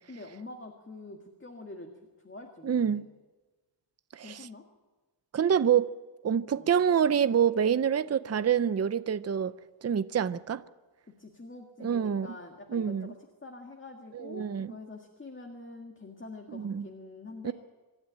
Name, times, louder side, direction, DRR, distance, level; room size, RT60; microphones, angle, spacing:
voice 1, 0.1-1.9 2.2-3.0 4.2-4.7 6.5-6.7 11.2-17.5, left 2 dB, 25° left, 1.9 m, -46 dB
voice 2, 2.6-3.0 4.1-4.4 5.3-5.9 6.2-9.5 9.8-10.6 11.8-12.3 12.7-13.1 14.1-14.7 16.5-16.9 17.4-17.5, right 8 dB, 35° right, 0.6 m, -26 dB
26.0 x 12.5 x 9.0 m
wide cardioid pair, 130°, 45 cm